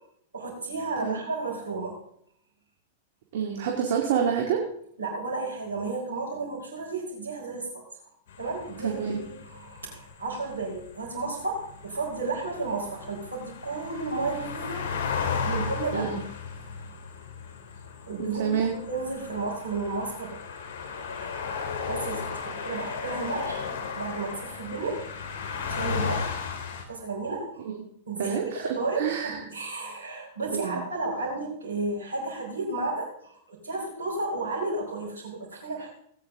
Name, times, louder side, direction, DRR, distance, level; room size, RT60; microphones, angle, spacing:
voice 1, 0.3-2.0 5.0-8.1 8.4-14.9 15.4-16.1 18.1-20.4 20.8-21.4 21.9-25.0 25.7-26.6 26.9-27.7 28.1-35.9, right 3 dB, 85° right, -6 dB, 4.5 m, -33 dB
voice 2, 3.3-4.6 8.8-9.2 15.9-16.2 18.2-18.7 27.7-27.9 28.2-28.7 29.0-29.4 30.5-30.8, right 7 dB, 65° right, 0 dB, 2.3 m, -27 dB
sound 1, 8.3-26.8, left 5 dB, 60° left, 3.0 m, -35 dB
18.5 x 9.2 x 3.7 m, 0.69 s
hypercardioid pair, 105°, 0 cm